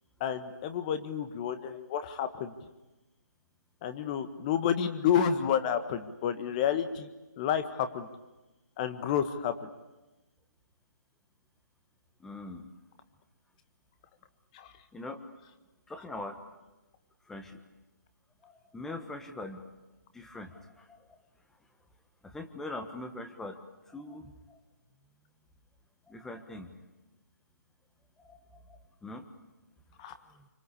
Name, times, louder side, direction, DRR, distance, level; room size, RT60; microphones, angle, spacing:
voice 1, 0.2-2.5 3.8-7.1 7.4-8.1 8.8-9.7 14.5-14.7 30.0-30.1, left 8 dB, 20° left, 10 dB, 1.5 m, -30 dB
voice 2, 12.2-12.7 14.9-15.2 15.9-16.4 17.3-17.6 18.4-19.6 20.1-21.2 22.2-23.6 23.9-24.6 26.1-26.7 28.2-29.2 30.3-30.5, left 2 dB, 5° left, 6 dB, 1.3 m, -42 dB
27.0 x 25.0 x 8.5 m, 1.1 s
figure-of-eight pair, 160°, 10 cm